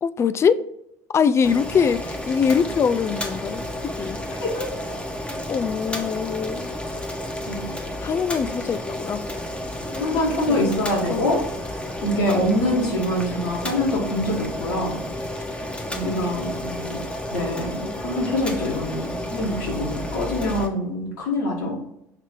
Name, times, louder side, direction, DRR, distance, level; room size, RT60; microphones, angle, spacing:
voice 1, 0.0-0.7 1.1-4.2 5.5-6.7 8.0-9.2 9.9-10.2 10.5-10.6 11.1-11.2 16.0-16.1, left 6 dB, 30° left, 13 dB, 0.4 m, -23 dB
Boiling, 1.4-20.7, left 1 dB, 10° left, 1.2 m, -31 dB
voice 2, 10.0-11.4 12.0-15.0 15.9-17.0 17.3-21.8, left 1 dB, 70° left, -3 dB, 2.1 m, -25 dB
6.6 x 3.2 x 4.7 m, 0.79 s
figure-of-eight pair, 65°, 9 cm